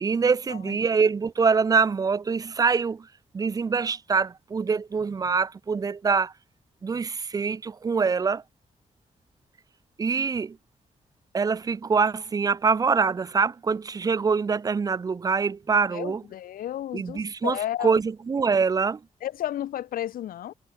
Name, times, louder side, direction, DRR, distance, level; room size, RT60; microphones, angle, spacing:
voice 1, 0.0-3.1 3.3-6.3 6.8-8.4 10.0-10.6 11.3-16.2 16.9-19.0, right 5 dB, 25° right, 0.3 m, -24 dB
voice 2, 15.9-18.0 19.2-20.5, left 12 dB, 85° left, 0.5 m, -32 dB
wide cardioid pair, 115°, 14 cm